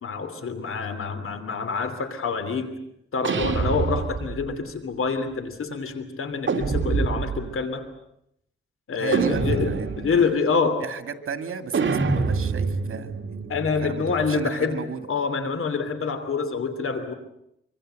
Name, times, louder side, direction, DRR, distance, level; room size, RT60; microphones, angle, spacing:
voice 1, 0.0-2.8 3.1-7.9 8.9-10.8 13.5-14.8 15.1-17.1, left 4 dB, 85° left, 9 dB, 3.0 m, -26 dB
sound 1, 3.2-4.5 6.5-7.6 9.1-10.2 11.7-14.4, right 4 dB, 65° right, 2.5 m, -26 dB
voice 2, 9.0-10.3 10.8-13.5 13.8-15.0, right 6 dB, 85° right, 8 dB, 2.4 m, -34 dB
26.5 x 25.0 x 7.8 m, 0.77 s
wide cardioid pair, 105°, 21 cm